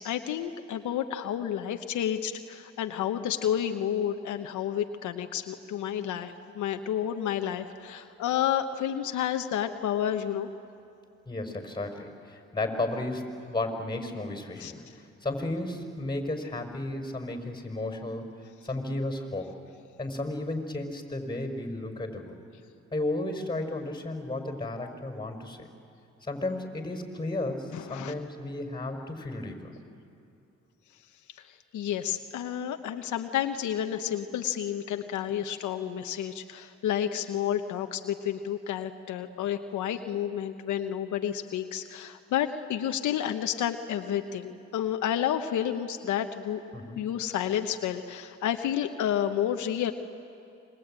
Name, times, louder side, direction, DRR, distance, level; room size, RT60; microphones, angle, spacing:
voice 1, 0.0-10.5 14.6-14.7 27.7-28.1 31.7-46.6 47.0-49.9, left 10 dB, 85° left, 7 dB, 1.0 m, -30 dB
voice 2, 11.3-14.8 15.2-19.5 20.0-22.4 22.9-25.7 26.2-29.7 46.7-47.0, left 2 dB, 15° left, 5 dB, 5.2 m, -33 dB
27.0 x 23.5 x 8.9 m, 2.6 s
supercardioid pair, 55°, 29 cm